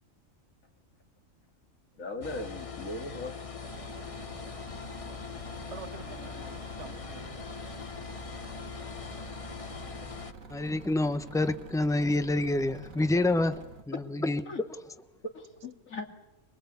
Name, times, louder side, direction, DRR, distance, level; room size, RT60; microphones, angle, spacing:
voice 1, 2.0-3.4 14.5-14.6 15.2-16.1, left 2 dB, 85° left, 4 dB, 2.9 m, -38 dB
sound 1, 2.2-10.3, left 5 dB, 30° left, 1.0 m, -41 dB
sound 2, 3.6-13.8, right 3 dB, 85° right, 2.3 m, -48 dB
voice 2, 5.7-7.8, right 5 dB, 60° right, 11 dB, 1.5 m, -47 dB
voice 3, 10.5-14.7, left 2 dB, 5° left, 10 dB, 1.0 m, -28 dB
24.5 x 22.5 x 8.3 m, 1.1 s
omnidirectional pair, 1.4 m